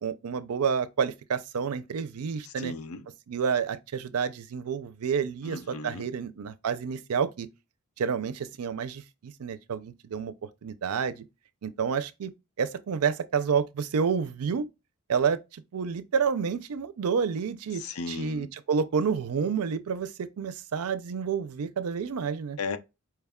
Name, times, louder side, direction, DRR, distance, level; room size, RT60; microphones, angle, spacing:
voice 1, 0.0-2.7 3.3-7.5 8.0-10.3 10.6-11.2 11.6-12.3 12.6-14.7 15.1-17.8 18.1-22.6, right 6 dB, 85° right, 0.4 m, -29 dB
voice 2, 2.4-3.1 5.4-6.1 17.7-18.5 22.6-22.8, left 4 dB, 75° left, 0.5 m, -36 dB
4.6 x 2.2 x 3.5 m
head